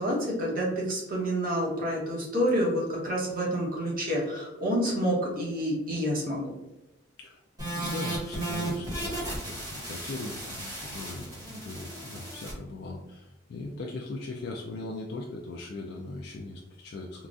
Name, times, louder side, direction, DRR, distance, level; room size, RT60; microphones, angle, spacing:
voice 1, 0.0-6.5, equal, 50° right, -3 dB, 1.0 m, -28 dB
voice 2, 7.2-17.3, left 2 dB, 55° left, -1 dB, 0.3 m, -39 dB
sound 1, 7.6-12.5, right 1 dB, 20° right, 1.2 m, -35 dB
3.8 x 2.3 x 2.4 m, 0.93 s
head